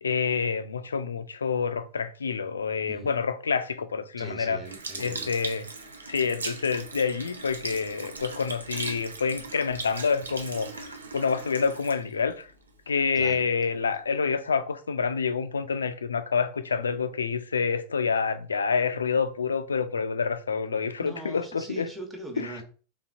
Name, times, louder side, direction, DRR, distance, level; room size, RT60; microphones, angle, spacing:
voice 1, 0.0-4.6 5.0-5.7 6.1-12.5 12.9-21.9 22.4-22.5, left 5 dB, 70° left, 0.4 m, -27 dB
voice 2, 4.2-5.3 13.1-13.4 21.0-22.6, right 2 dB, 10° right, 0.9 m, -41 dB
Sink (filling or washing) / Liquid, 4.6-13.2 13.9-14.0, right 3 dB, 75° right, 0.6 m, -39 dB
4.0 x 3.4 x 2.4 m
figure-of-eight pair, 90°, 0 cm